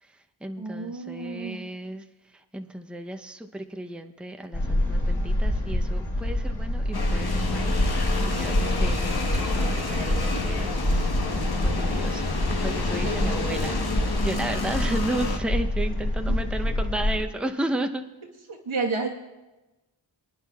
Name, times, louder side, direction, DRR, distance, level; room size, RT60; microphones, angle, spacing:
voice 1, 0.0-11.1 11.3-13.8 14.2-18.0, right 1 dB, ahead, 5 dB, 0.7 m, -34 dB
voice 2, 0.6-1.6 13.0-13.3 16.3-16.4 18.5-19.1, right 4 dB, 90° right, 0 dB, 1.5 m, -31 dB
sound 1, 4.5-17.2, left 1 dB, 75° left, 4.2 m, -26 dB
sound 2, 6.9-15.4, left 3 dB, 50° left, 1.2 m, -30 dB
28.5 x 9.7 x 2.4 m, 1.1 s
wide cardioid pair, 60°, 47 cm